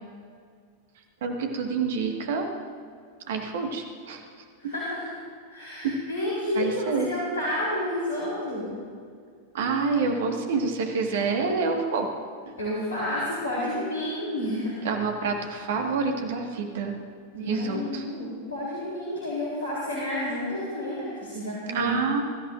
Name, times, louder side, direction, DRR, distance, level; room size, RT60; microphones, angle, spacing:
voice 1, 1.2-2.5 3.3-4.2 4.6-4.7 5.8-5.9 6.6-7.1 9.5-12.1 12.5-12.6 14.8-16.9 17.5-18.0 21.7-22.2, right 4 dB, 55° right, 3 dB, 1.8 m, -27 dB
voice 2, 4.6-5.2 5.5-8.7 12.6-14.8 17.3-21.9, left 1 dB, 70° left, -6 dB, 3.6 m, -30 dB
23.0 x 14.5 x 2.7 m, 2.1 s
figure-of-eight pair, 90°, 0 cm